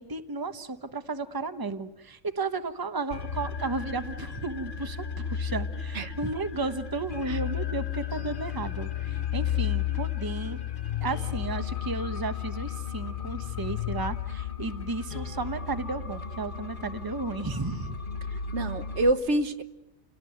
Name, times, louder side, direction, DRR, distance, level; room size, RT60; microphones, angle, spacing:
voice 1, 0.0-10.6 11.0-17.9, right 3 dB, 20° right, 9 dB, 1.1 m, -33 dB
sound 1, 3.1-19.1, left 9 dB, 45° left, 1.2 m, -33 dB
voice 2, 18.5-19.6, right 1 dB, 70° right, 9 dB, 1.5 m, -26 dB
30.0 x 18.0 x 9.3 m, 0.90 s
omnidirectional pair, 1.2 m